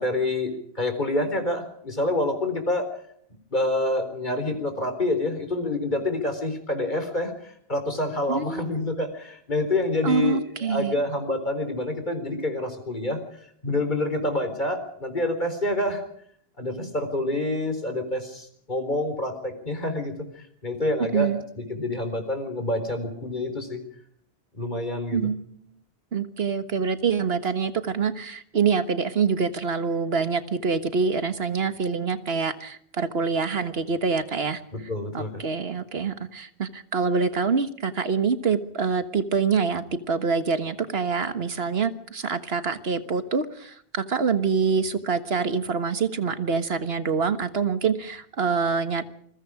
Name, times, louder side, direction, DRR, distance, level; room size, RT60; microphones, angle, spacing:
voice 1, 0.0-2.9 3.5-13.2 13.6-16.0 16.6-23.8 24.5-25.3 34.7-35.4, left 2 dB, 45° left, 6 dB, 4.2 m, -27 dB
voice 2, 8.3-8.6 10.0-11.0 21.1-21.4 25.1-25.5 26.1-34.6 35.1-49.0, right 5 dB, 75° right, 10 dB, 1.7 m, -25 dB
28.0 x 21.5 x 4.9 m, 0.65 s
omnidirectional pair, 1.1 m